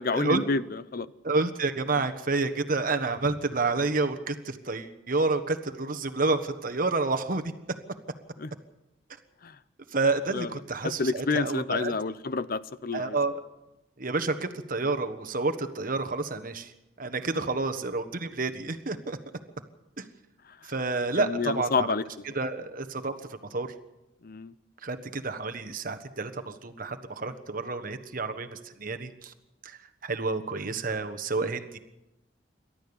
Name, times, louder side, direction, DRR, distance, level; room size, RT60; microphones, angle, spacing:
voice 1, 0.0-1.1 8.4-8.5 9.4-9.6 10.3-10.5 10.8-13.2 21.2-22.0 24.2-24.5, left 4 dB, 50° left, 16 dB, 0.7 m, -29 dB
voice 2, 1.2-7.5 9.9-11.9 12.9-13.4 14.0-16.7 17.0-19.2 20.0-20.1 20.6-21.9 22.3-23.1 23.5-23.7 24.8-29.3 29.6-31.8, right 3 dB, 50° right, 8 dB, 1.3 m, -29 dB
28.5 x 13.0 x 7.1 m, 0.96 s
head